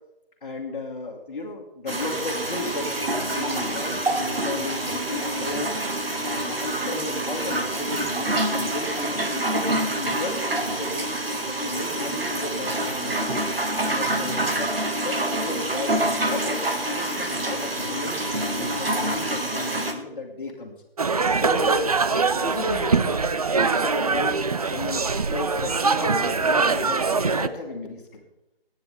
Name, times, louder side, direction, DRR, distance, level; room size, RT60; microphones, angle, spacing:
voice 1, 0.4-2.9 3.3-5.8 6.2-11.1 11.5-13.4 13.9-18.2 18.6-20.7 21.4-23.2 23.6-25.0 25.3-28.3, left 2 dB, 40° left, -6 dB, 2.0 m, -34 dB
sound 1, 1.9-19.9, right 1 dB, 75° right, 2.0 m, -27 dB
sound 2, 21.0-27.5, right 4 dB, 40° right, 0.6 m, -23 dB
20.5 x 9.5 x 3.5 m, 0.92 s
figure-of-eight pair, 150°, 30 cm